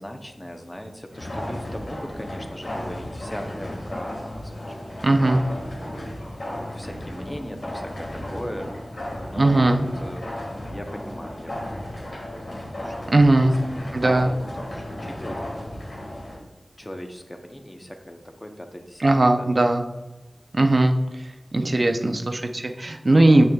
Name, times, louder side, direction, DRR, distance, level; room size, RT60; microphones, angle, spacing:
voice 1, 0.0-6.1 6.7-8.7 9.3-10.4 10.7-12.5 12.8-16.2 16.8-19.1 19.4-19.5, equal, 25° left, 4 dB, 0.8 m, -39 dB
sound 1, 1.1-16.4, left 1 dB, 80° left, 1.7 m, -34 dB
voice 2, 5.0-5.4 9.4-9.8 13.1-13.5 13.9-14.3 19.0-19.8 20.5-21.0 21.5-23.4, right 2 dB, 60° right, 5 dB, 0.5 m, -18 dB
7.0 x 6.4 x 2.4 m, 1.1 s
cardioid pair, 40°, 0 cm